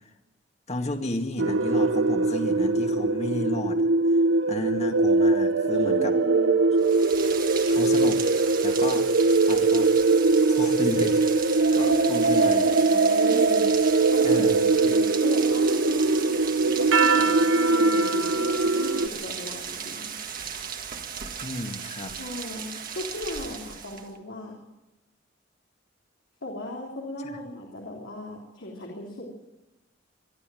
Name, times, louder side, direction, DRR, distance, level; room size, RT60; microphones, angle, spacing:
voice 1, 0.7-4.2 4.5-6.2 7.7-8.2 8.6-9.1 9.5-9.9 10.4-11.2 11.7-12.7 14.2-14.9 21.4-22.1 27.2-27.4, left 1 dB, 35° left, 5 dB, 2.0 m, -33 dB
Ethereal Toll, 1.4-19.1, right 3 dB, 80° right, 0.9 m, -21 dB
voice 2, 5.8-6.5 11.8-13.8 14.1-14.5 14.8-20.1 22.1-24.6 26.4-29.2, left 1 dB, 85° left, -3 dB, 3.5 m, -37 dB
Rain, 6.8-24.2, right 7 dB, 45° right, 1.7 m, -36 dB
24.0 x 12.0 x 9.2 m, 1.0 s
head